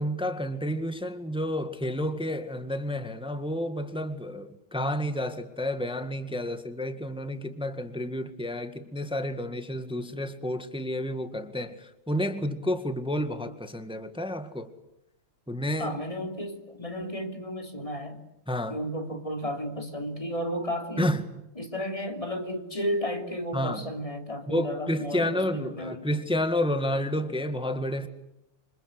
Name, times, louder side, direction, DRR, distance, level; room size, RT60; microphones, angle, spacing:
voice 1, 0.0-14.7 15.5-16.0 18.5-18.8 21.0-21.2 23.5-23.8 24.5-28.1, left 1 dB, 5° right, 1.6 m, -30 dB
voice 2, 15.8-18.2 18.7-21.1 21.6-26.1, equal, 15° left, 3.1 m, -33 dB
27.5 x 26.5 x 8.0 m
omnidirectional pair, 2.3 m